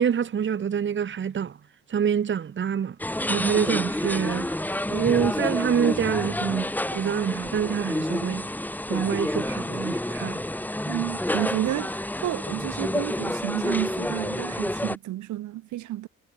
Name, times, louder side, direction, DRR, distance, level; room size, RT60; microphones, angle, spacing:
voice 1, 0.0-1.6 1.9-3.0 3.3-4.5 4.9-8.5 8.9-10.4, right 8 dB, 40° right, 1.1 m, -26 dB
sound 1, 3.0-15.0, left 1 dB, 5° left, 2.2 m, -29 dB
voice 2, 10.9-16.1, right 14 dB, 75° right, 0.9 m, -31 dB
cardioid pair, 90°, 30 cm